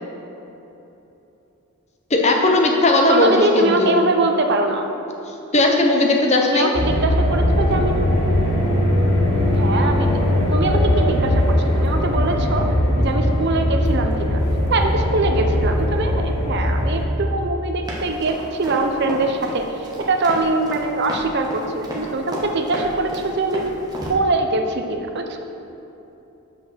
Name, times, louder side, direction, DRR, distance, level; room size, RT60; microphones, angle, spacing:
voice 1, 2.1-4.0 5.5-6.7, left 2 dB, 30° left, 1 dB, 0.7 m, -17 dB
voice 2, 3.1-4.9 6.4-8.0 9.6-10.1 10.5-14.4 14.7-23.6 24.1-25.4, right 2 dB, 50° right, 4 dB, 0.5 m, -23 dB
sound 1, 6.7-17.0, left 1 dB, 80° left, 1.2 m, -20 dB
Run, 17.9-24.1, equal, 20° right, 0.9 m, -32 dB
5.8 x 5.1 x 6.2 m, 3.0 s
head